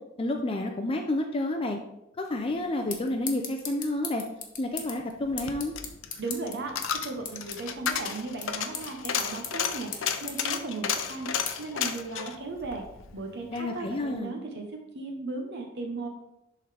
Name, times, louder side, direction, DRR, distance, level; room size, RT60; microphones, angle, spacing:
voice 1, 0.2-1.8 2.2-4.2 4.6-5.7 13.5-14.4, left 1 dB, 30° left, 3 dB, 0.5 m, -30 dB
sound 1, 2.3-12.7, left 6 dB, 45° left, 1.2 m, -42 dB
Coin (dropping), 5.2-13.7 14.0-14.1, left 7 dB, 70° left, 0.6 m, -33 dB
voice 2, 6.2-12.8 13.1-16.1, right 3 dB, 60° right, 3 dB, 0.9 m, -36 dB
11.0 x 3.8 x 3.3 m, 0.87 s
head